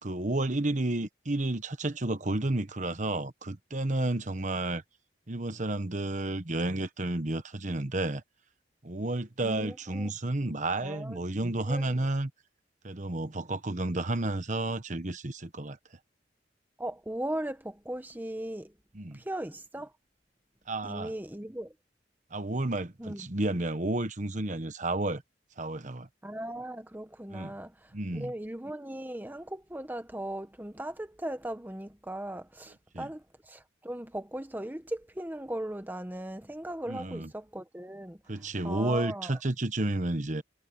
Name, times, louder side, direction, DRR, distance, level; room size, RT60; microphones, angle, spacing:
voice 1, 0.0-4.8 5.3-8.2 8.8-12.3 12.8-15.8 18.9-19.2 20.7-21.1 22.3-25.2 25.6-26.1 27.3-27.6 27.9-28.3 32.9-33.1 36.9-37.3 38.3-40.4, right 2 dB, 45° right, 1.2 m, -31 dB
voice 2, 9.4-10.1 10.8-12.0 16.8-18.7 19.1-19.9 20.8-21.7 23.0-23.2 26.2-38.2 38.6-39.4, right 1 dB, 10° right, 1.0 m, -38 dB
head